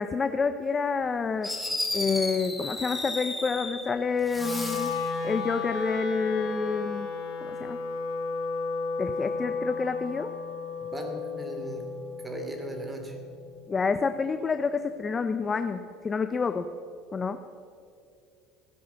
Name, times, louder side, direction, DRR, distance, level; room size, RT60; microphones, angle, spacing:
voice 1, 0.0-1.5 1.9-4.9 5.2-7.1 7.4-7.8 9.0-10.3 13.7-16.7 17.1-17.4, left 5 dB, 25° left, 10 dB, 0.6 m, -28 dB
Fireworks, 1.0-1.1 1.4-3.9 4.2-5.1, left 2 dB, 5° left, 2.6 m, -33 dB
Wind instrument woodwind instrument, 4.3-14.5, left 4 dB, 60° left, 2.8 m, -34 dB
voice 2, 10.8-11.9 12.2-13.2, right 1 dB, 15° right, 4 dB, 2.7 m, -37 dB
16.0 x 10.5 x 7.0 m, 2.4 s
supercardioid pair, 115°, 0 cm